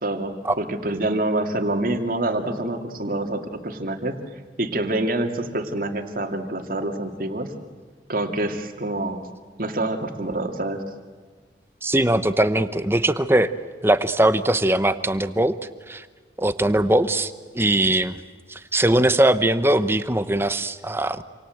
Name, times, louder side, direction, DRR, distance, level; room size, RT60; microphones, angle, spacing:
voice 1, 0.0-4.2 4.6-7.5 8.1-9.2 9.6-10.8, right 1 dB, 50° right, 5 dB, 2.5 m, -26 dB
voice 2, 11.8-13.5 13.8-15.6 15.9-16.1 16.4-18.2 18.5-21.2, right 1 dB, 15° right, 12 dB, 0.9 m, -21 dB
27.5 x 27.0 x 8.0 m, 1.5 s
head